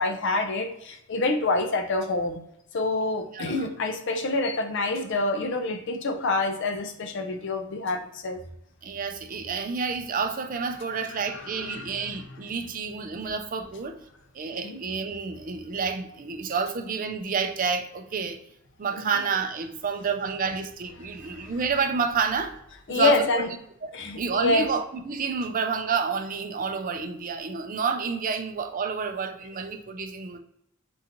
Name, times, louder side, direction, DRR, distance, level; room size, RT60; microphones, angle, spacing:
voice 1, 0.0-2.4 2.7-8.4 11.3-12.1 14.6-14.8 18.9-19.2 21.2-21.5 22.9-23.5 23.9-24.7, left 3 dB, 60° left, 0.6 m, -27 dB
voice 2, 3.3-3.7 8.8-14.0 14.3-18.4 18.8-22.6 22.9-23.4 23.8-23.9 24.2-30.4, right 5 dB, 40° right, 0.4 m, -29 dB
3.8 x 3.6 x 2.9 m
head